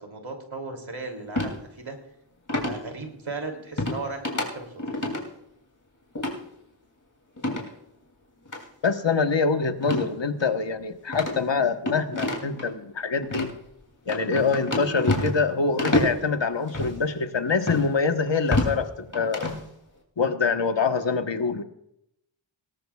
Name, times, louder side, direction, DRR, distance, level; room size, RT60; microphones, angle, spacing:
voice 1, 0.0-2.0 2.6-5.0, right 3 dB, 80° right, 3 dB, 3.1 m, -36 dB
sound 1, 1.3-1.5 2.5-2.8 3.8-4.0 4.2-4.5 4.8-5.2 6.1-6.3 7.4-7.7 8.4-8.6 9.8-10.1 10.4-10.5 11.1-12.6 13.2-13.5 14.1-15.5 15.8-16.2 16.7-16.9 17.7-17.8 18.3-18.8 19.1-19.6, left 1 dB, 40° left, 2.9 m, -27 dB
voice 2, 8.8-13.5 14.1-19.5 20.2-21.6, left 4 dB, 65° left, 6 dB, 1.3 m, -25 dB
18.5 x 18.0 x 2.4 m, 0.78 s
wide cardioid pair, 70°, 47 cm